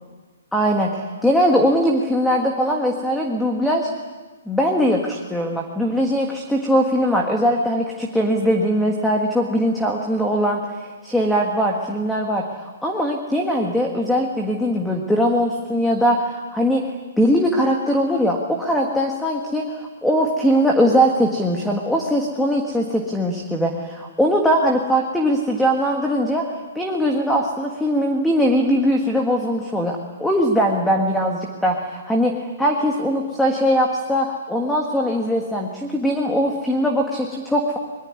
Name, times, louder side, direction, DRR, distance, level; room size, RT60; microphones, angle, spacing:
voice 1, 0.5-3.9 4.5-10.6 11.0-16.9 17.2-37.8, equal, ahead, 1 dB, 1.5 m, -21 dB
24.5 x 22.5 x 9.8 m, 1.3 s
hypercardioid pair, 175°, 0 cm